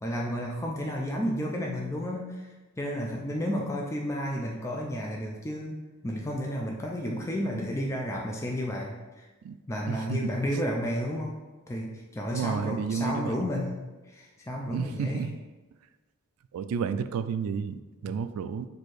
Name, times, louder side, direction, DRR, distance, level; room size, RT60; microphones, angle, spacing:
voice 1, 0.0-2.5 2.8-9.3 9.7-11.4 11.7-13.8 14.1-15.3 18.1-18.2, equal, 15° left, -1 dB, 0.4 m, -32 dB
voice 2, 9.9-10.3 12.3-13.5 14.7-15.4 16.5-18.7, right 6 dB, 80° right, 14 dB, 0.3 m, -31 dB
4.3 x 2.7 x 4.6 m, 1.2 s
head